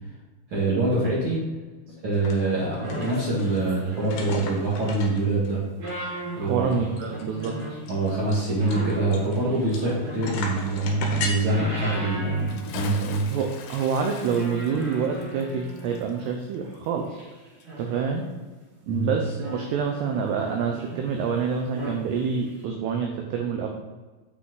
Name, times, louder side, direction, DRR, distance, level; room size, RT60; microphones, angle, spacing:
voice 1, 0.5-1.4 2.0-5.6 6.4-6.9 7.9-13.3 18.9-19.2, right 2 dB, 70° right, -8 dB, 1.1 m, -25 dB
sound 1, 2.1-2.3 2.6-3.6 4.0-5.5 5.9-6.0 6.2-6.3 6.7-9.9 10.2-11.3, left 4 dB, 65° left, 2.5 m, -34 dB
sound 2, 2.8-4.6 5.6-7.8 8.6-10.6 11.1-13.1 13.4-13.6 14.3-16.3 17.2-18.5 19.2-21.2 21.6-22.0 22.5-22.6, right 1 dB, 55° right, 2.4 m, -38 dB
voice 2, 6.4-7.6 13.3-17.3 17.8-18.3 18.9-23.7, right 6 dB, 85° right, 3 dB, 2.3 m, -27 dB
Bathtub (filling or washing) / Splash splatter, 12.4-17.3 17.6-17.7, left 7 dB, 80° left, 2.9 m, -42 dB
8.3 x 6.1 x 3.9 m, 1.3 s
omnidirectional pair, 5.7 m